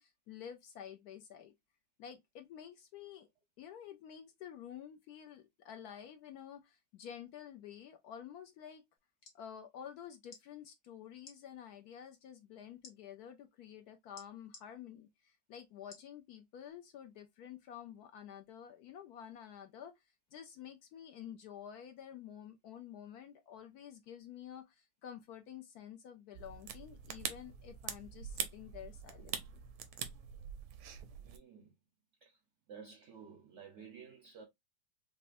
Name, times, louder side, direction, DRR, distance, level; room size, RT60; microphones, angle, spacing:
voice 1, 0.0-1.5 2.0-3.3 3.6-8.8 9.3-20.0 20.3-29.6, left 9 dB, 70° left, 0.9 m, -50 dB
sound 1, 9.0-9.4 10.2-10.4 11.2-11.4 12.8-13.0 14.2-14.7 15.9-16.1 16.7-16.8, left 4 dB, 45° left, 1.2 m, -54 dB
sound 2, 26.3-31.4, right 8 dB, 90° right, 1.5 m, -44 dB
voice 2, 31.2-31.7 32.2-32.4 32.7-34.4, right 6 dB, 60° right, 0.8 m, -53 dB
5.5 x 2.1 x 2.5 m
omnidirectional pair, 2.1 m